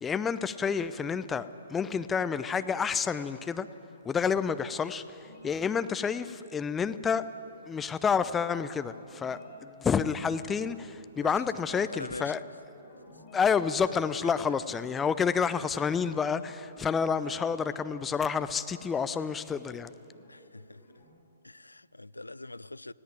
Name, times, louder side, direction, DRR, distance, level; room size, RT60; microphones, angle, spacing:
voice 1, 0.0-3.7 4.0-7.3 7.7-12.4 13.3-19.9, left 6 dB, 10° left, 0.5 m, -29 dB
sound 1, 5.2-21.0, left 1 dB, 35° left, 6.0 m, -56 dB
voice 2, 11.2-12.4 13.1-13.2 14.2-14.3 17.1-17.4 20.3-20.8 21.4-22.9, left 2 dB, 85° left, 0.4 m, -43 dB
19.5 x 16.0 x 8.9 m
figure-of-eight pair, 125°, 0 cm